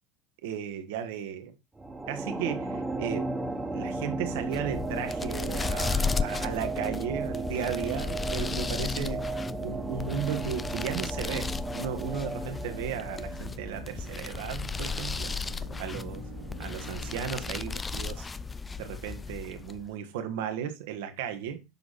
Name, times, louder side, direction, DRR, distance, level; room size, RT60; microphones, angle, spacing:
voice 1, 0.4-1.5 2.1-3.3 3.7-9.2 9.6-15.3 15.8-16.3 16.6-18.3 18.8-21.6, right 8 dB, 75° right, 1.3 m, -35 dB
sound 1, 1.8-14.3, right 2 dB, 15° right, 1.3 m, -35 dB
sound 2, 4.4-19.9, left 5 dB, 20° left, 0.4 m, -35 dB
Drill, 10.1-18.7, right 5 dB, 90° right, 1.3 m, -47 dB
7.1 x 4.7 x 4.1 m
hypercardioid pair, 85°, 0 cm